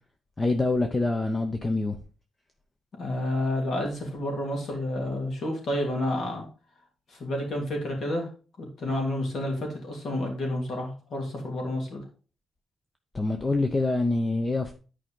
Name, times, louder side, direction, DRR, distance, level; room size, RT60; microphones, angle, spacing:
voice 1, 0.4-1.9 13.1-14.8, left 2 dB, 20° left, 6 dB, 0.7 m, -25 dB
voice 2, 3.0-6.4 7.1-8.3 8.6-12.0, left 1 dB, 60° left, 1 dB, 3.2 m, -30 dB
10.5 x 5.0 x 3.8 m, 0.37 s
wide cardioid pair, 135°, 0 cm